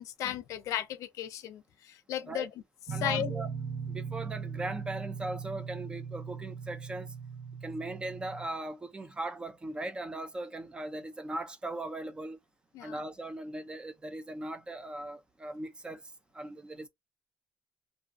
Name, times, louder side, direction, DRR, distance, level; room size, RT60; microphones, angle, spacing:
voice 1, 0.0-2.5 2.9-3.3 12.7-13.0, left 11 dB, 70° left, 0.5 m, -35 dB
voice 2, 2.9-3.5 3.9-7.1 7.6-12.4 12.8-16.0 16.3-16.9, right 2 dB, 15° right, 0.4 m, -39 dB
sound 1, 2.9-8.5, right 6 dB, 65° right, 0.9 m, -39 dB
2.5 x 2.5 x 2.4 m
cardioid pair, 130°, 6 cm